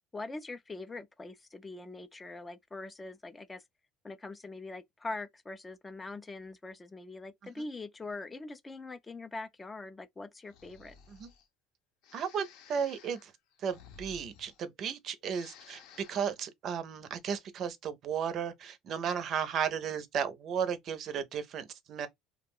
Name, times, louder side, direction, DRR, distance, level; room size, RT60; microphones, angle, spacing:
voice 1, 0.0-3.6 4.0-11.0, left 2 dB, 20° left, 0.3 m, -43 dB
Breathing, 10.4-11.5 12.0-14.9 15.2-16.4, left 6 dB, 70° left, 0.6 m, -55 dB
voice 2, 12.1-13.3 13.6-15.8 16.1-22.1, right 7 dB, 50° right, 0.5 m, -34 dB
2.3 x 2.1 x 3.5 m
supercardioid pair, 105°, 0 cm